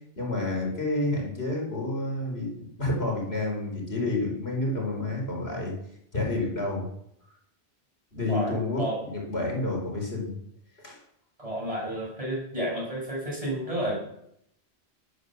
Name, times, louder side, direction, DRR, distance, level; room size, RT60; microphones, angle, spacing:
voice 1, 0.2-5.7 6.1-6.9 8.1-10.4 10.8-11.0, left 2 dB, 65° left, -1 dB, 4.8 m, -29 dB
voice 2, 8.3-9.0 11.4-14.1, right 1 dB, 30° right, -3 dB, 7.9 m, -31 dB
14.0 x 11.5 x 6.8 m, 0.74 s
omnidirectional pair, 1.2 m